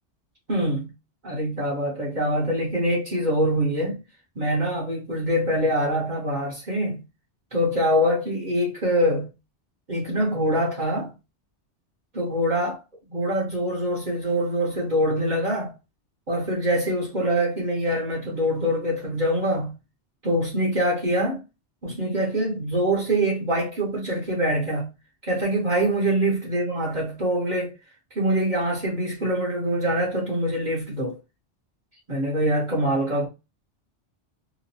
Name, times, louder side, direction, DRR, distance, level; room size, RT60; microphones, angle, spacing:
voice 1, 0.5-0.9 1.2-4.0 4.4-7.0 7.5-9.3 9.9-11.1 12.1-12.8 13.1-15.7 16.3-19.7 20.2-21.4 21.8-24.9 25.2-27.7 28.1-31.2 32.1-33.3, equal, 45° right, 0.9 m, -24 dB
2.9 x 2.4 x 2.6 m
omnidirectional pair, 1.2 m